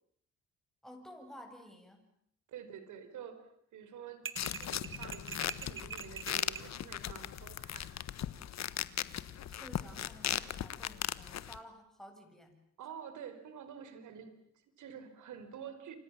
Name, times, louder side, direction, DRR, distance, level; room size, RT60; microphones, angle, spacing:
voice 1, 0.8-2.1 9.4-12.6, equal, ahead, 4 dB, 7.8 m, -53 dB
voice 2, 2.5-7.9 12.8-16.0, right 8 dB, 75° right, 10 dB, 4.6 m, -49 dB
sound 1, 4.3-6.7, right 7 dB, 40° right, 1.5 m, -44 dB
sound 2, 4.4-11.6, left 10 dB, 60° left, 1.4 m, -38 dB
29.0 x 26.0 x 7.5 m, 0.67 s
cardioid pair, 90°, 30 cm